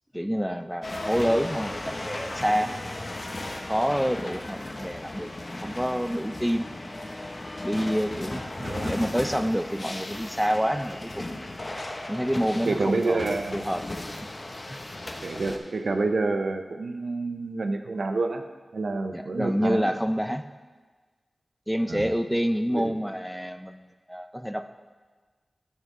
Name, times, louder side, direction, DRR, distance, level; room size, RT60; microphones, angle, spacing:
voice 1, 0.1-2.7 3.7-5.3 5.6-6.7 7.6-8.4 8.8-11.4 12.1-13.8 14.1-14.2 14.7-14.8 19.1-20.4 21.7-23.8 24.1-24.7, equal, ahead, 9 dB, 0.4 m, -27 dB
sound 1, 0.8-15.6, left 1 dB, 40° left, 0.8 m, -36 dB
voice 2, 8.6-8.9 12.6-13.6 15.2-18.4 18.7-19.9 21.9-22.1 22.7-23.0, right 3 dB, 85° right, 6 dB, 0.5 m, -28 dB
13.0 x 5.4 x 3.6 m, 1.4 s
wide cardioid pair, 70°, 0 cm